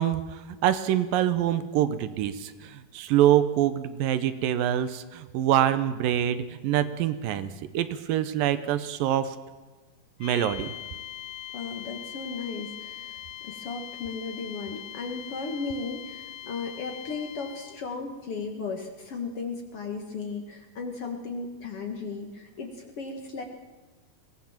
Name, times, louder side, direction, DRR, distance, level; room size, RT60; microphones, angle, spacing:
voice 1, 0.0-9.4 10.2-10.7, right 11 dB, 75° right, 13 dB, 2.4 m, -25 dB
sound 1, 10.2-17.9, left 12 dB, 75° left, 2.1 m, -41 dB
voice 2, 11.5-23.4, left 4 dB, 50° left, 4 dB, 2.0 m, -35 dB
22.5 x 18.0 x 7.2 m, 1.3 s
omnidirectional pair, 4.2 m